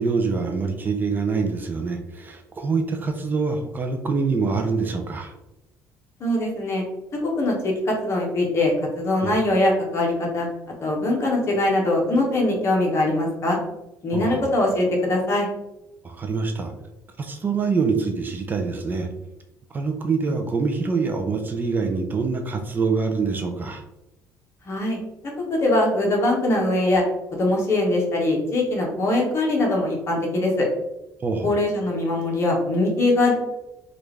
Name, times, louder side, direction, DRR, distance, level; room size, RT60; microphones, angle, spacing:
voice 1, 0.0-5.3 9.2-9.3 14.1-14.4 16.0-16.7 17.2-19.1 19.7-23.8 31.2-31.5, right 4 dB, 30° right, 5 dB, 0.4 m, -25 dB
voice 2, 6.2-6.8 7.1-10.5 10.8-13.6 14.0-15.5 24.7-25.0 25.5-27.0 27.3-30.7 31.4-33.3, left 2 dB, 45° left, -1 dB, 1.0 m, -22 dB
3.3 x 2.5 x 3.1 m, 0.93 s
cardioid pair, 125°, 7 cm